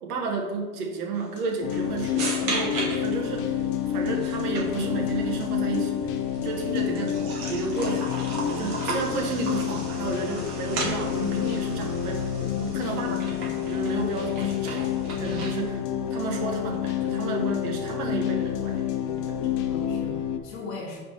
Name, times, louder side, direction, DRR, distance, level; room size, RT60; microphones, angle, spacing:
voice 1, 0.0-6.1 6.4-8.2 8.5-15.8 16.1-18.8 19.2-19.4, right 4 dB, 75° right, 2 dB, 1.3 m, -32 dB
sound 1, 1.1-19.9, left 11 dB, 80° left, 1.0 m, -40 dB
sound 2, 1.6-20.4, left 10 dB, 55° left, 0.7 m, -29 dB
sound 3, 1.7-15.7, right 2 dB, 50° right, 1.7 m, -36 dB
voice 2, 12.8-13.3 19.6-21.0, left 3 dB, 30° left, -7 dB, 1.1 m, -40 dB
4.9 x 3.5 x 5.5 m, 1.3 s
supercardioid pair, 130°, 46 cm